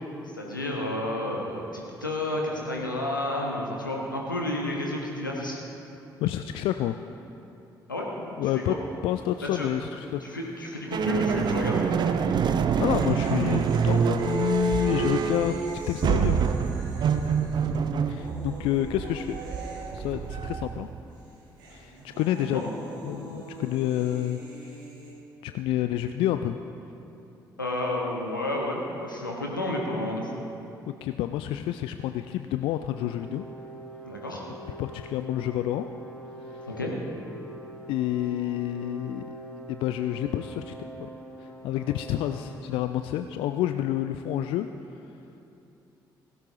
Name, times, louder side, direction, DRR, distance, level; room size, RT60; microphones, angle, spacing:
voice 1, 0.3-5.6 7.9-8.1 8.5-8.8 9.4-9.7 10.2-11.9 22.4-22.6 27.6-30.4 34.0-34.4 36.7-36.9, left 1 dB, 85° left, -1 dB, 1.3 m, -31 dB
voice 2, 6.2-7.0 8.4-8.7 9.0-10.2 12.8-16.4 18.1-19.4 19.9-20.9 21.7-22.6 23.0-24.8 25.4-26.6 30.9-33.4 34.8-35.9 36.4-36.8 37.9-39.4 39.7-40.7 41.0-41.1 41.4-44.7, left 12 dB, 60° left, 9 dB, 0.4 m, -29 dB
sound 1, 9.1-9.5 9.7-9.8 12.5-20.8 21.1-25.1, right 2 dB, 75° right, 2.1 m, -46 dB
sound 2, 10.9-21.0, right 6 dB, 45° right, 0.7 m, -26 dB
sound 3, 32.9-42.8, right 2 dB, 20° left, 3.3 m, -44 dB
17.0 x 16.0 x 2.9 m, 2.8 s
figure-of-eight pair, 45°, 10 cm